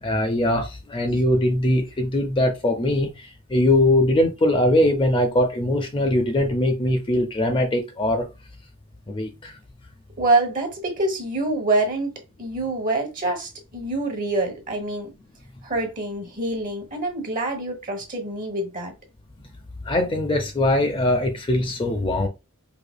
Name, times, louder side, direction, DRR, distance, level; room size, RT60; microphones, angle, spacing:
voice 1, 0.0-8.3 9.1-9.6 19.8-22.3, left 1 dB, 25° left, 0.4 m, -21 dB
voice 2, 10.2-12.1 12.4-15.1 15.6-18.9, right 2 dB, 40° right, 1.0 m, -25 dB
4.9 x 2.8 x 2.2 m
head